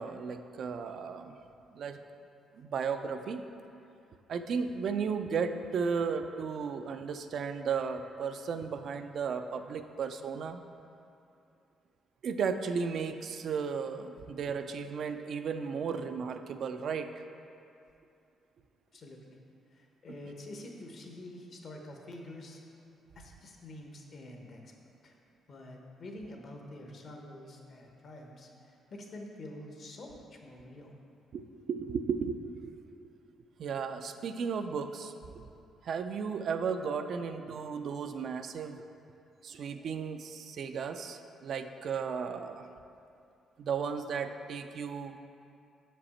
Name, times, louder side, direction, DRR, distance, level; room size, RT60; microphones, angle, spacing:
voice 1, 0.0-1.3 1.7-2.0 2.6-3.4 4.3-10.6 12.2-17.1 31.3-32.7 33.6-35.4 35.8-38.8 39.4-42.6 43.6-45.2, right 6 dB, 65° right, 8 dB, 0.3 m, -34 dB
voice 2, 18.9-19.4 19.7-22.6 23.1-24.7 25.0-25.1 25.5-30.9, left 1 dB, 55° left, 1 dB, 0.9 m, -47 dB
6.4 x 5.1 x 4.3 m, 2.6 s
cardioid pair, 90°, 0 cm